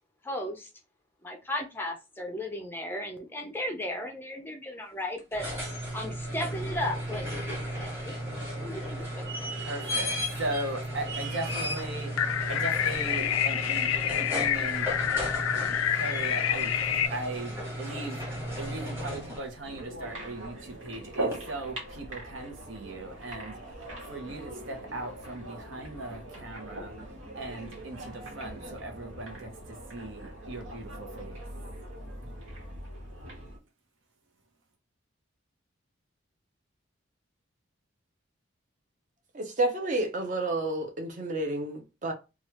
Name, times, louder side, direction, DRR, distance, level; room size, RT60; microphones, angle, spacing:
voice 1, 0.2-0.7 1.2-5.5 5.9-8.2 8.6-9.2, left 1 dB, 10° left, 0.4 m, -35 dB
sound 1, 5.2-19.6 21.3-21.4, equal, 10° right, 1.1 m, -35 dB
voice 2, 9.5-12.2 12.5-14.9 15.5-16.7 17.0-18.2 18.6-27.0 27.3-31.5, right 2 dB, 75° right, 0.9 m, -38 dB
sound 2, 12.2-17.1, left 9 dB, 85° left, 0.3 m, -28 dB
sound 3, 19.6-33.6, right 1 dB, 90° right, 1.3 m, -41 dB
voice 3, 39.3-42.1, right 2 dB, 40° right, 0.6 m, -30 dB
3.0 x 2.3 x 3.0 m
head